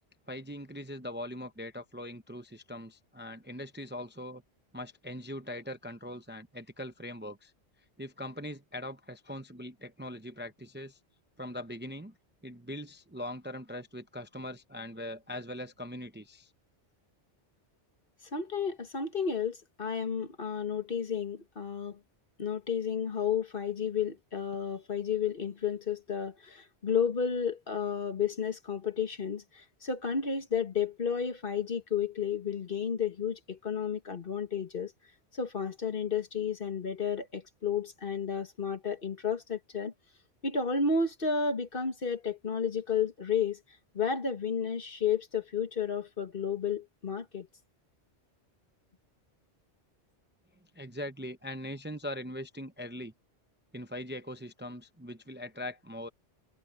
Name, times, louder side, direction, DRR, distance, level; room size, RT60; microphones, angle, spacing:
voice 1, 0.3-4.4 4.7-7.5 8.0-11.0 11.4-12.1 12.4-16.5 50.7-53.1 53.7-56.1, left 1 dB, 10° right, 0.7 m, -41 dB
voice 2, 18.3-22.0 22.4-34.9 35.3-39.9 40.4-43.6 43.9-47.5, left 6 dB, 55° left, 1.7 m, -32 dB
omnidirectional pair, 1.1 m